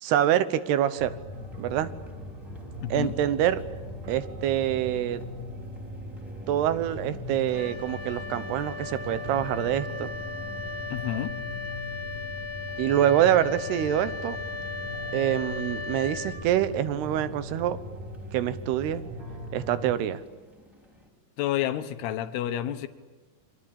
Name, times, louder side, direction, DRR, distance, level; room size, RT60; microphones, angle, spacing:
voice 1, 0.0-1.1 1.6-1.9 2.9-3.6 4.1-5.2 6.5-10.1 12.8-14.4 15.1-17.8 18.3-19.0 19.5-20.2, right 11 dB, 85° right, 13 dB, 3.1 m, -25 dB
sound 1, 1.0-20.0, left 1 dB, 45° right, 4.1 m, -40 dB
sound 2, 1.3-21.1, equal, ahead, 3.6 m, -50 dB
voice 2, 2.8-3.1 10.9-11.3 21.4-22.9, left 12 dB, 85° left, 10 dB, 3.1 m, -29 dB
Wind instrument woodwind instrument, 7.5-17.0, left 4 dB, 65° left, 1.2 m, -37 dB
28.5 x 23.5 x 8.8 m, 1.2 s
omnidirectional pair, 4.6 m